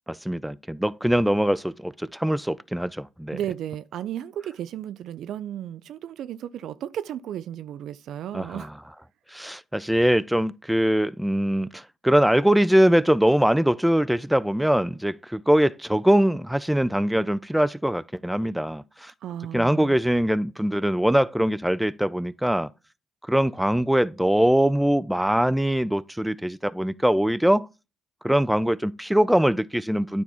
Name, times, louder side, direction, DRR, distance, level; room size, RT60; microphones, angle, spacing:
voice 1, 0.1-3.4 8.3-8.7 9.3-19.1 19.5-22.7 23.3-27.7 28.2-30.2, equal, 5° right, 0.4 m, -22 dB
voice 2, 3.3-8.7 19.2-20.0, right 11 dB, 70° right, 0.4 m, -34 dB
9.4 x 3.5 x 4.1 m
hypercardioid pair, 50°, 0 cm